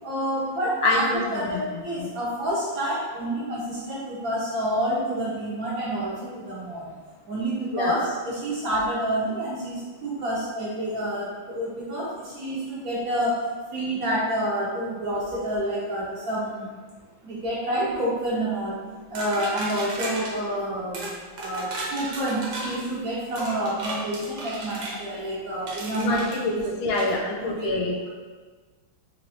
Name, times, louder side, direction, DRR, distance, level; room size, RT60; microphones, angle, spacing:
voice 1, 0.0-1.0 1.3-6.9 7.2-13.4 13.7-16.7 17.2-18.8 19.1-21.1 21.4-26.2 26.5-26.6 26.9-27.1 27.4-27.7, right 1 dB, 50° right, -8 dB, 1.3 m, -28 dB
voice 2, 0.8-2.1 7.7-8.1 26.0-27.9, left 2 dB, 90° left, 0 dB, 1.5 m, -26 dB
sound 1, 19.2-20.3 20.9-21.1 21.4-22.8 23.4-25.0 25.7-26.4 26.9-27.2, right 2 dB, 70° right, 1.4 m, -34 dB
4.3 x 3.0 x 2.7 m, 1.4 s
omnidirectional pair, 2.2 m